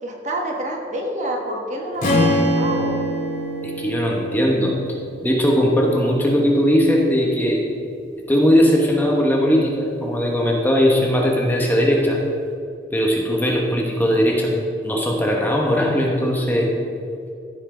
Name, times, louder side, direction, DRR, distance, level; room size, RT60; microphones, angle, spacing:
voice 1, 0.0-3.0, right 1 dB, 40° right, 0 dB, 1.3 m, -28 dB
Strum, 2.0-6.3, equal, 50° left, 2.3 m, -24 dB
voice 2, 3.6-4.7 5.2-7.6 8.3-12.2 12.9-14.5 14.8-16.7, equal, 10° left, -1 dB, 1.0 m, -19 dB
15.0 x 5.5 x 3.8 m, 2.3 s
head